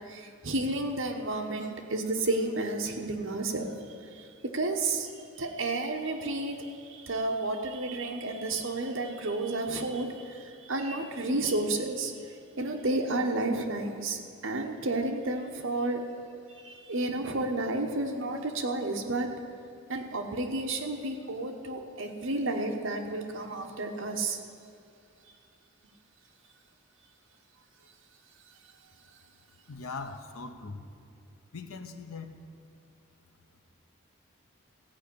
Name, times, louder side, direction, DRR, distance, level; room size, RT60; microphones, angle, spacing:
voice 1, 0.1-3.7 4.1-4.3 4.5-16.0 16.5-19.3 19.9-24.4, right 2 dB, 60° right, 3 dB, 1.1 m, -31 dB
voice 2, 29.7-30.8 31.5-32.3, left 4 dB, 80° left, 6 dB, 0.8 m, -40 dB
15.5 x 5.3 x 8.7 m, 2.4 s
head